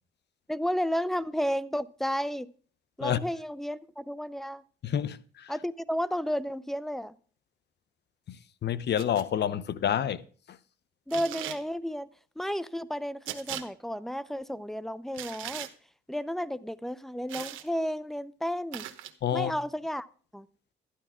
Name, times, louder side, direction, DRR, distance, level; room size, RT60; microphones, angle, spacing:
voice 1, 0.5-2.5 3.0-4.6 5.5-7.1 11.1-12.1 12.4-15.7 16.1-18.9 19.3-20.1 20.3-20.5, equal, ahead, 0.6 m, -32 dB
voice 2, 4.8-5.5 8.6-10.2 10.5-10.6 19.2-19.5, left 9 dB, 60° left, 0.9 m, -28 dB
sound 1, 9.0-9.3 11.1-11.6 13.2-13.6 15.1-15.7 17.3-17.7 18.7-19.1, right 12 dB, 85° right, 1.1 m, -38 dB
12.5 x 11.5 x 3.7 m
cardioid pair, 90°, 20 cm